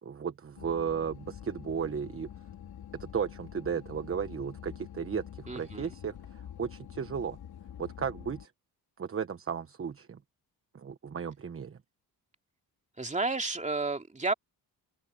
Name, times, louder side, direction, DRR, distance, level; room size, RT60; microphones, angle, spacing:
voice 1, 0.0-2.3 3.0-7.4 7.8-8.5 9.0-10.2 10.7-11.8, right 7 dB, 35° right, 1.2 m, -35 dB
sound 1, 0.6-8.5, left 10 dB, 75° left, 4.8 m, -47 dB
voice 2, 5.5-5.9 13.0-14.3, right 3 dB, 20° right, 2.6 m, -31 dB
open air
cardioid pair, 100°, 38 cm